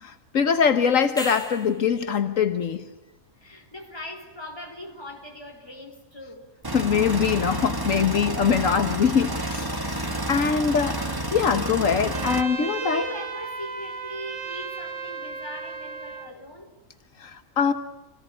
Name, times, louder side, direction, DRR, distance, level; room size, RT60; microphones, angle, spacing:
voice 1, 0.0-2.9 6.7-11.0 11.3-13.0 17.2-17.7, left 6 dB, 80° left, 1.6 m, -23 dB
sound 1, 1.0-1.9 6.6-6.7, equal, 5° left, 2.6 m, -36 dB
voice 2, 3.4-6.5 10.1-10.7 12.6-16.7, left 1 dB, 20° left, 4.2 m, -39 dB
sound 2, 6.6-12.4, right 1 dB, 15° right, 1.5 m, -30 dB
Trumpet, 12.1-16.3, right 5 dB, 65° right, 1.9 m, -35 dB
27.5 x 18.5 x 9.7 m
omnidirectional pair, 1.4 m